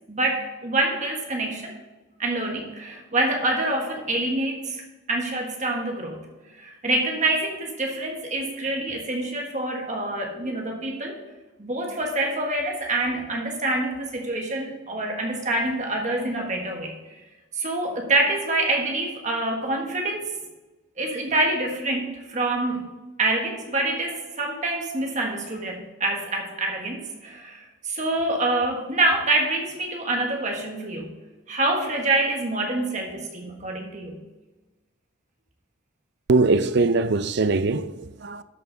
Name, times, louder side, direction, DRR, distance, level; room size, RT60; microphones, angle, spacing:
voice 1, 0.1-1.8 2.2-4.8 5.1-6.2 6.5-11.2 11.6-16.9 17.5-20.3 21.0-22.8 23.2-31.1 31.5-34.2, right 2 dB, 35° right, 1.4 m, -26 dB
voice 2, 36.3-38.4, right 3 dB, 55° right, 0.5 m, -21 dB
12.5 x 5.8 x 3.9 m
head